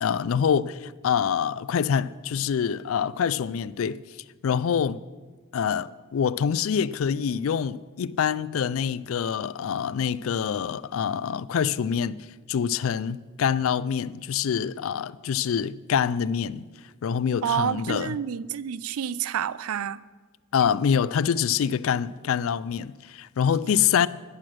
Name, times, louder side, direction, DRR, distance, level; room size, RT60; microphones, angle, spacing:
voice 1, 0.0-4.0 4.4-5.0 5.5-16.7 17.0-18.2 20.5-24.1, left 7 dB, 65° left, 0.4 m, -25 dB
voice 2, 17.4-20.0, right 8 dB, 90° right, 0.4 m, -29 dB
11.0 x 10.5 x 6.1 m
head